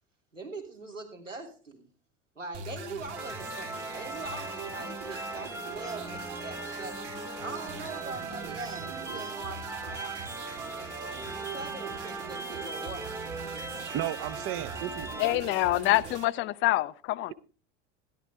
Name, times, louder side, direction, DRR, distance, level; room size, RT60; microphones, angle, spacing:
voice 1, 0.3-1.8 2.4-7.0 7.4-13.9, right 3 dB, 85° right, 3.1 m, -42 dB
sound 1, 2.5-16.2, right 6 dB, 70° right, 3.3 m, -43 dB
sound 2, 3.2-15.3, right 2 dB, 5° right, 1.2 m, -39 dB
voice 2, 13.9-15.1, right 12 dB, 35° right, 0.9 m, -33 dB
voice 3, 15.2-17.3, left 17 dB, 30° left, 0.6 m, -26 dB
17.0 x 12.0 x 3.3 m
figure-of-eight pair, 75°, 37 cm